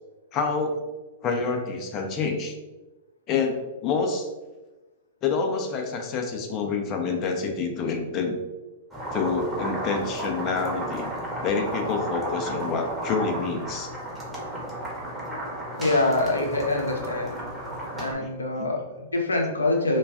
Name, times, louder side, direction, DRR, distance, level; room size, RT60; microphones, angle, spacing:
voice 1, 0.3-0.8 1.2-2.5 3.3-3.6 3.8-4.3 5.2-8.4 9.1-11.1 11.4-13.9 18.2-18.3 18.6-18.7, left 4 dB, 35° left, 3 dB, 0.4 m, -27 dB
sound 1, 8.9-18.1, right 1 dB, 10° right, 0.8 m, -33 dB
voice 2, 15.8-17.4 17.9-20.0, left 2 dB, 80° left, 1 dB, 0.6 m, -25 dB
2.3 x 2.3 x 3.4 m, 1.1 s
figure-of-eight pair, 105°, 0 cm